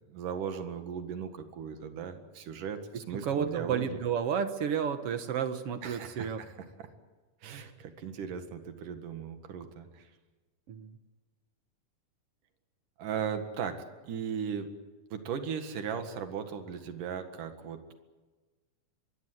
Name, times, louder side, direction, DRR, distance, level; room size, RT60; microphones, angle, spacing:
voice 1, 0.1-4.0 5.8-6.5 6.8-6.9 7.4-10.1 13.0-13.8 14.0-14.7 15.1-17.9, right 7 dB, 80° right, 7 dB, 3.5 m, -37 dB
voice 2, 2.9-6.4 10.7-11.0, right 7 dB, 60° right, 9 dB, 1.9 m, -32 dB
24.0 x 21.5 x 8.1 m, 1.3 s
omnidirectional pair, 3.7 m